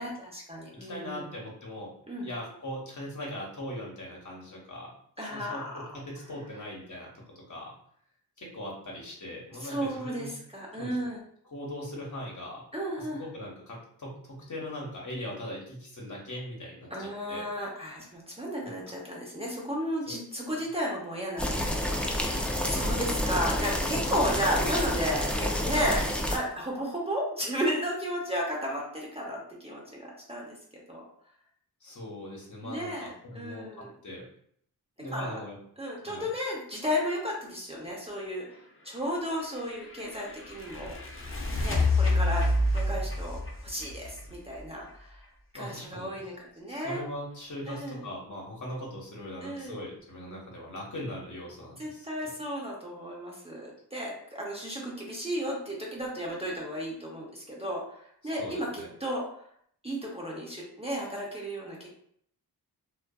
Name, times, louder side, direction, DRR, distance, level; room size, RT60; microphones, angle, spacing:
voice 1, 0.0-1.3 2.1-2.3 5.2-5.8 9.6-11.2 12.7-13.2 16.9-21.4 21.7-31.0 32.6-33.1 33.3-33.9 35.1-35.4 35.8-38.6 38.8-41.0 41.6-42.5 42.7-45.2 45.5-47.0 47.7-48.0 49.4-49.8 51.8-59.3 59.8-61.9, equal, 15° right, -3 dB, 0.7 m, -34 dB
voice 2, 0.7-1.9 2.2-4.9 5.2-5.6 6.0-7.7 8.4-10.3 10.8-11.0 11.5-12.6 13.0-17.4 18.6-18.7 20.1-20.2 20.5-20.6 31.8-34.3 35.0-35.6 36.1-36.3 45.5-46.2 46.7-52.3 58.2-58.9, left 1 dB, 45° left, -2 dB, 1.0 m, -40 dB
sound 1, 21.4-26.4, equal, 5° left, 0.3 m, -29 dB
sound 2, 39.1-44.9, left 2 dB, 30° left, 0.7 m, -29 dB
2.5 x 2.3 x 2.2 m, 0.65 s
cardioid pair, 55°, 40 cm